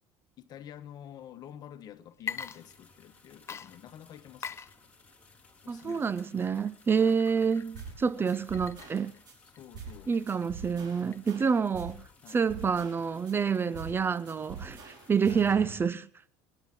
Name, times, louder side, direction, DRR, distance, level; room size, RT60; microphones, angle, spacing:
voice 1, 0.4-4.6 5.6-6.1 6.9-7.2 8.2-8.4 9.6-10.1 12.2-12.5 15.3-15.4, left 10 dB, 50° left, 1.3 m, -48 dB
Water / Liquid, 2.1-3.2 3.5-11.7, left 7 dB, 30° left, 0.6 m, -45 dB
sound 1, 2.3-15.5, left 3 dB, 15° left, 3.5 m, -60 dB
voice 2, 5.7-9.1 10.1-16.1, right 6 dB, 25° right, 0.5 m, -28 dB
sound 2, 7.7-8.0 8.3-9.3 9.7-10.0 10.3-12.0 12.3-13.3 13.7-14.0 14.3-15.7, right 5 dB, 50° right, 4.9 m, -44 dB
23.5 x 11.0 x 3.7 m
supercardioid pair, 95°, 9 cm